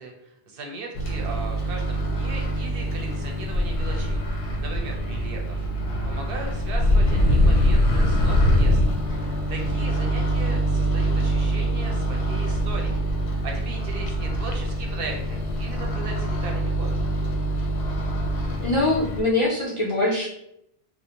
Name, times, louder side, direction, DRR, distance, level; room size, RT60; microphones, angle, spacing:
voice 1, 0.0-5.7 6.0-9.0 9.5-13.1 13.3-17.1, right 3 dB, 65° right, 1 dB, 0.7 m, -38 dB
Microwave oven, 0.9-19.2, equal, 85° left, 0.8 m, -24 dB
voice 2, 18.6-20.3, left 2 dB, 45° left, -6 dB, 0.4 m, -23 dB
2.5 x 2.0 x 2.8 m, 0.76 s
omnidirectional pair, 1.1 m